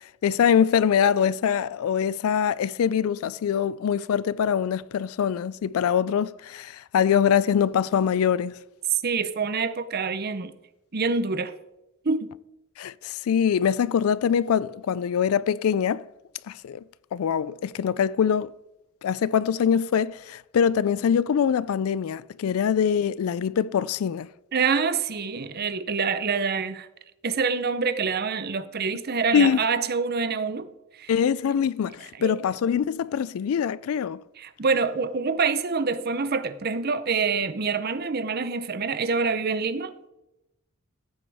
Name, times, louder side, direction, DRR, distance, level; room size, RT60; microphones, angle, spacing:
voice 1, 0.2-8.6 12.8-16.1 16.5-16.8 17.1-18.5 19.0-24.3 29.3-29.6 31.1-34.2, left 8 dB, 85° left, 0.3 m, -23 dB
voice 2, 8.9-10.5 10.9-11.5 12.0-12.3 24.5-26.9 27.2-30.7 30.9-31.1 32.2-32.3 34.4-39.9, right 5 dB, 45° right, 0.7 m, -26 dB
15.0 x 8.6 x 3.5 m
head